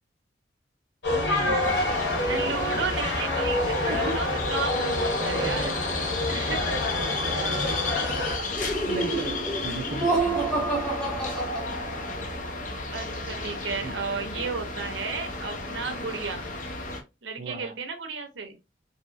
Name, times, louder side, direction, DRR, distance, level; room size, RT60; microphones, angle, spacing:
sound 1, 1.0-8.4, left 2 dB, 70° left, 1.4 m, -27 dB
voice 1, 1.1-2.0 3.8-4.2 5.2-6.7 7.0-9.4 9.6-10.4 13.8-14.0 17.4-17.7, right 3 dB, 40° right, 0.4 m, -37 dB
sound 2, 1.6-17.0, left 3 dB, 45° left, 0.6 m, -33 dB
voice 2, 2.3-5.8 6.3-6.6 12.9-16.5 17.2-18.6, right 4 dB, 80° right, 0.7 m, -33 dB
Laughter, 8.5-12.3, right 3 dB, 5° left, 1.1 m, -28 dB
3.0 x 2.7 x 2.3 m
head